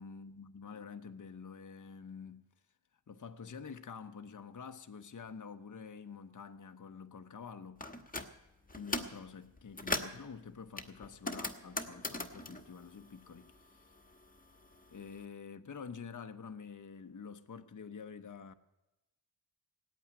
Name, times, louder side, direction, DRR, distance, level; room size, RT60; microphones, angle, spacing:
voice 1, 0.0-2.5 3.1-7.8 8.7-13.9 14.9-18.5, left 6 dB, 40° left, 0.9 m, -48 dB
sound 1, 7.8-8.3 8.7-9.2 9.6-10.2 10.8-13.7 14.0-15.1, left 2 dB, 20° left, 1.3 m, -39 dB
17.5 x 8.8 x 9.4 m
wide cardioid pair, 80°, 47 cm